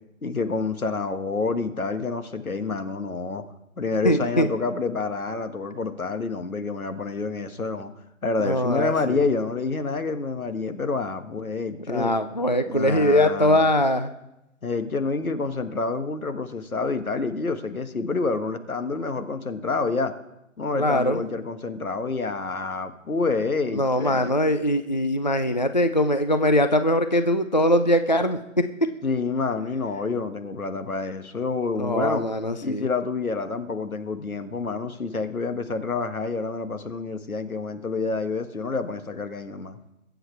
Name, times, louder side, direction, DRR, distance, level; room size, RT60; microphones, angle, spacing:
voice 1, 0.2-3.4 3.8-7.9 8.2-12.1 12.6-13.6 14.6-20.1 20.6-24.3 29.0-32.3 32.6-39.8, left 4 dB, 85° left, 8 dB, 1.6 m, -28 dB
voice 2, 4.0-4.5 8.4-9.2 11.9-14.1 20.8-21.2 23.7-28.7 31.8-32.8, left 1 dB, 35° left, 9 dB, 0.4 m, -22 dB
22.0 x 7.9 x 4.5 m, 0.92 s
figure-of-eight pair, 165°, 42 cm